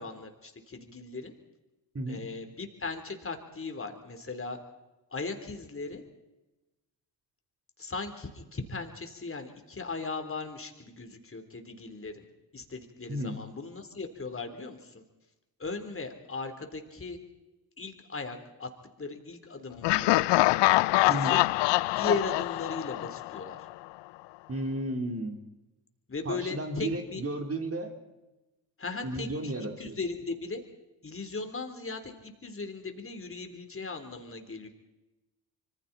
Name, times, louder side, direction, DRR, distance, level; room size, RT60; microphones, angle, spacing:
voice 1, 0.0-1.3 2.1-4.6 5.1-6.0 7.8-12.3 12.5-15.0 15.6-17.2 17.8-18.7 19.0-20.5 21.0-21.4 22.0-23.6 26.1-27.2 28.8-30.6 31.0-34.7, left 3 dB, 25° left, 5 dB, 3.9 m, -37 dB
voice 2, 13.1-13.4 21.1-21.4 24.5-25.4 26.2-27.9 29.0-30.0, right 1 dB, 30° right, 4 dB, 3.8 m, -33 dB
Laughter, 19.8-23.7, left 20 dB, 60° left, 0.6 m, -25 dB
26.0 x 25.0 x 4.4 m, 1.0 s
hypercardioid pair, 50°, 50 cm